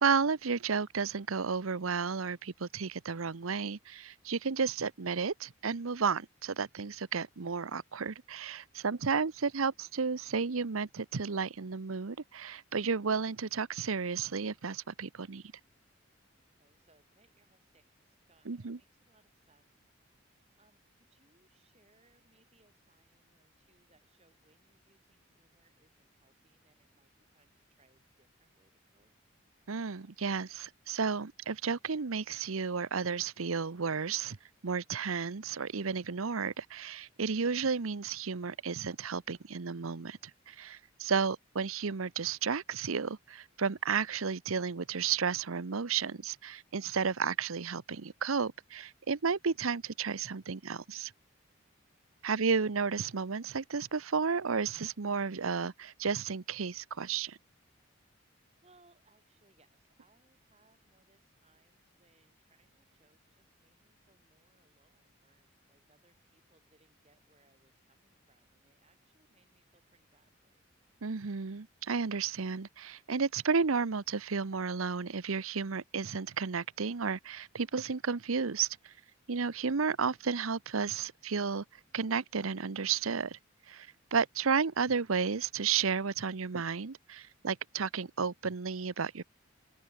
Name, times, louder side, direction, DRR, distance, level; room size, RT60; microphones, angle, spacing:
voice 1, 0.0-15.4 18.5-18.8 29.7-34.4 34.6-51.1 52.2-57.4 71.0-78.9 79.3-81.6 81.9-83.4 83.7-89.2, right 5 dB, 90° right, 0.8 m, -32 dB
voice 2, 16.4-19.8 20.6-29.1 40.8-41.1 52.1-52.3 58.6-70.6 83.9-84.2, right 2 dB, 30° right, 5.1 m, -70 dB
open air
head